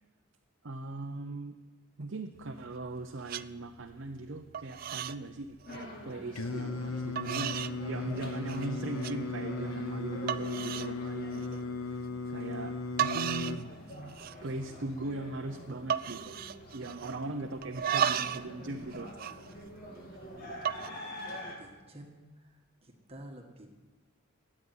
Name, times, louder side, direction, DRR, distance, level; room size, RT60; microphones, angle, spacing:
voice 1, 0.6-1.5 2.0-11.6 11.8-12.0 12.3-16.3 16.7-19.1, right 2 dB, 60° right, 4 dB, 0.8 m, -39 dB
sound 1, 2.4-3.0 3.2-3.5 3.9-4.3 4.5-5.2 5.5-5.8 6.6-6.7 7.2-7.8 8.2-8.7 9.0-9.2 9.7-9.8 10.3-10.9 11.3-11.6 12.7-12.8 13.0-13.6 13.9-14.5 14.8-14.9 15.1-15.5 15.9-17.3 17.6-18.5 18.8-20.0 20.5-20.9, right 9 dB, 45° right, 0.3 m, -34 dB
sound 2, 5.7-21.6, left 1 dB, 45° left, 2.8 m, -47 dB
Singing, 6.4-13.6, left 3 dB, 80° left, 0.9 m, -37 dB
voice 2, 21.2-22.2 22.8-23.7, right 1 dB, 30° right, 2 dB, 1.6 m, -50 dB
13.5 x 8.8 x 9.6 m, 1.3 s
head